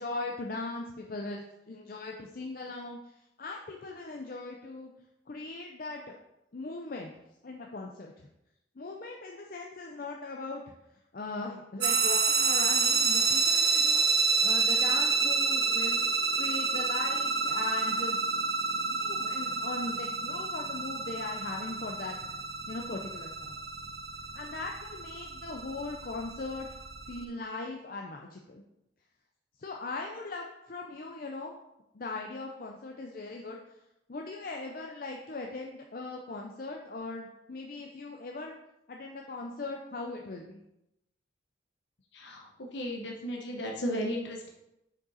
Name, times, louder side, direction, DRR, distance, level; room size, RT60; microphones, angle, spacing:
voice 1, 0.0-4.9 5.3-6.1 6.5-7.1 7.4-8.3 8.8-10.6 11.1-16.0 16.4-18.2 18.9-22.2 22.7-23.6 24.3-26.7 27.1-28.6 29.6-31.5 31.9-33.6 34.1-38.6 38.9-40.6, left 3 dB, 50° left, 1 dB, 0.5 m, -39 dB
sound 1, 11.8-27.2, right 4 dB, 55° right, 0.8 m, -29 dB
voice 2, 42.1-42.5 42.7-44.5, equal, 65° left, 0 dB, 1.0 m, -34 dB
6.4 x 5.3 x 4.1 m, 0.86 s
head